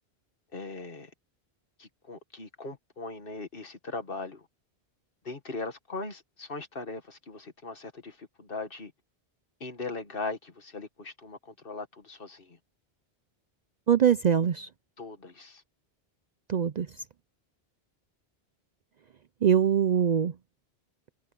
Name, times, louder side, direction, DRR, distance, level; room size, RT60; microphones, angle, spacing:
voice 1, 0.5-1.1 1.8-4.5 5.2-8.9 9.6-12.6 15.0-15.6, left 3 dB, 60° left, 1.9 m, -39 dB
voice 2, 13.9-14.7 16.5-16.9 19.4-20.3, right 8 dB, 55° right, 0.5 m, -23 dB
omnidirectional pair, 1.1 m